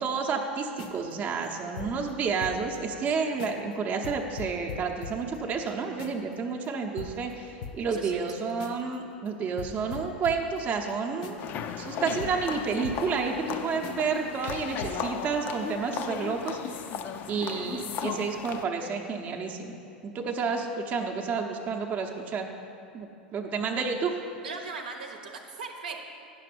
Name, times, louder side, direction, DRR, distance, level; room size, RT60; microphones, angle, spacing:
voice 1, 0.0-11.4 11.8-16.9 17.3-19.7 20.0-22.5 22.9-24.1, right 5 dB, 30° right, 1 dB, 0.8 m, -30 dB
sound 1, 0.6-2.8 3.1-3.2 3.4-3.7 4.0-6.3 6.6-6.7 7.0-8.9 9.3-9.4 9.6-13.5 13.8-14.2 14.5-15.0, left 5 dB, 60° left, 0.8 m, -43 dB
voice 2, 7.9-8.2 24.4-26.0, right 4 dB, 70° right, 3 dB, 0.9 m, -39 dB
sound 2, 11.4-18.6, left 7 dB, 40° left, 0.5 m, -36 dB
10.0 x 5.9 x 5.1 m, 2.6 s
figure-of-eight pair, 85°, 5 cm